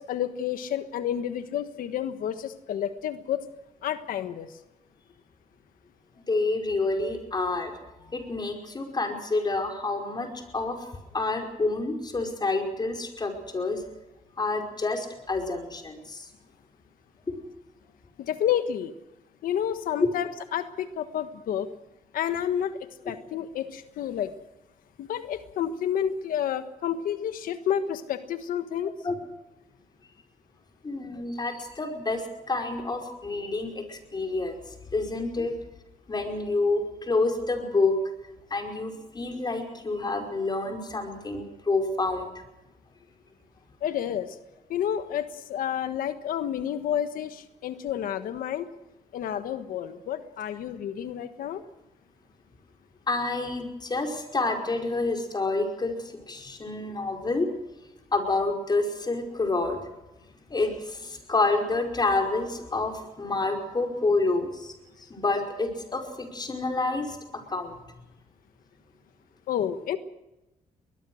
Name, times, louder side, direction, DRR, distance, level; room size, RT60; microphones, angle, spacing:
voice 1, 0.0-3.4 3.8-4.5 18.2-18.9 19.4-21.7 22.1-22.7 23.1-24.3 25.0-28.9 35.4-35.5 43.8-44.4 44.7-48.7 49.1-51.6 69.5-70.0, left 9 dB, 85° left, 10 dB, 1.3 m, -30 dB
voice 2, 6.3-7.7 8.1-10.9 11.1-13.8 14.4-16.3 17.3-17.4 20.0-20.1 29.0-29.1 30.8-35.5 36.1-38.0 38.5-42.3 53.1-57.5 58.1-59.8 60.5-67.8, left 3 dB, 30° left, 3 dB, 5.2 m, -28 dB
22.5 x 20.5 x 6.4 m, 0.96 s
cardioid pair, 100°, 14 cm